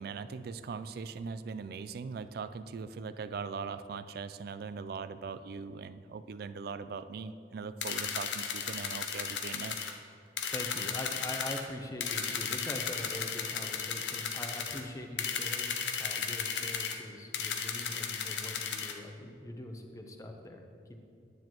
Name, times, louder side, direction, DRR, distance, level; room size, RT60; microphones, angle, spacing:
voice 1, 0.0-9.8, right 5 dB, 60° right, 13 dB, 0.3 m, -40 dB
sound 1, 7.8-9.9 10.4-11.6 12.0-14.8 15.2-17.0 17.3-18.9, left 7 dB, 90° left, 0.7 m, -35 dB
voice 2, 10.5-15.7 16.0-20.6, left 1 dB, 20° left, 4 dB, 0.7 m, -42 dB
9.7 x 9.3 x 3.0 m, 2.5 s
head